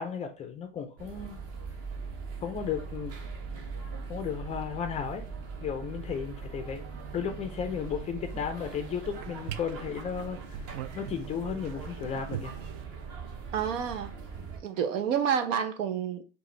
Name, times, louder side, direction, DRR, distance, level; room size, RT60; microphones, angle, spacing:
voice 1, 0.0-1.4 2.4-3.1 4.1-5.2 5.6-6.8 7.1-10.7 10.9-12.5, left 7 dB, 20° left, 0.3 m, -34 dB
sound 1, 1.0-14.6, right 5 dB, 40° right, 1.0 m, -41 dB
sound 2, 6.7-12.8, right 10 dB, 55° right, 0.5 m, -44 dB
voice 2, 13.5-14.2 14.6-16.2, right 8 dB, 80° right, 0.8 m, -29 dB
4.7 x 2.6 x 3.1 m
supercardioid pair, 120°, 38 cm